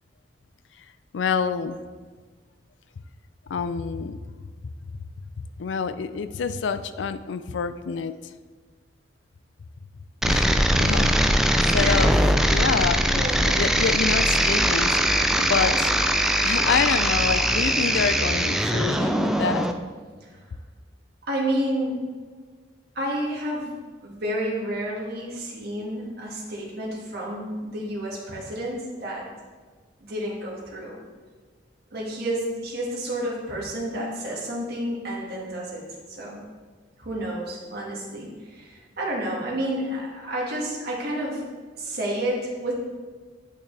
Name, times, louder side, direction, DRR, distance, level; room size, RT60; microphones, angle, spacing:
voice 1, 1.1-1.8 3.5-4.2 4.6-5.1 5.4-8.1 10.2-12.1 12.5-15.9 16.4-19.7, left 6 dB, 75° left, 12 dB, 0.4 m, -27 dB
sound 1, 10.2-19.7, right 1 dB, 5° right, 0.3 m, -21 dB
voice 2, 13.1-13.4 20.2-20.4 21.2-22.0 22.9-23.7 24.0-29.3 30.0-31.0 31.9-36.4 37.0-41.5 41.8-42.7, right 1 dB, 60° right, -4 dB, 1.8 m, -30 dB
9.1 x 5.8 x 3.3 m, 1.5 s
head